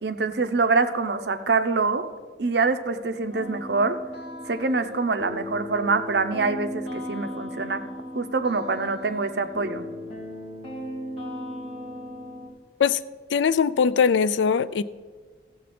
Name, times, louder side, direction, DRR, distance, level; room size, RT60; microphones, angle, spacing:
voice 1, 0.0-2.1 2.4-4.0 4.5-7.8 8.1-9.9, right 4 dB, 65° right, 0.6 m, -25 dB
sound 1, 3.3-12.5, left 1 dB, 30° left, 2.8 m, -37 dB
voice 2, 13.3-14.8, left 6 dB, 80° left, 0.4 m, -21 dB
15.0 x 7.2 x 4.2 m
head